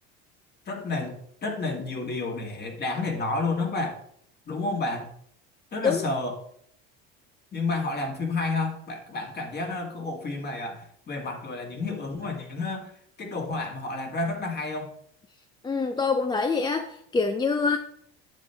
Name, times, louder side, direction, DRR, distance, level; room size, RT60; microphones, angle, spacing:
voice 1, 0.7-4.0 4.5-5.1 5.7-6.4 7.5-12.9 13.2-14.9, left 3 dB, 30° left, 3 dB, 1.9 m, -30 dB
voice 2, 15.6-17.8, left 4 dB, 15° left, 7 dB, 0.5 m, -25 dB
9.0 x 7.4 x 3.4 m, 0.67 s
cardioid pair, 115°, 30 cm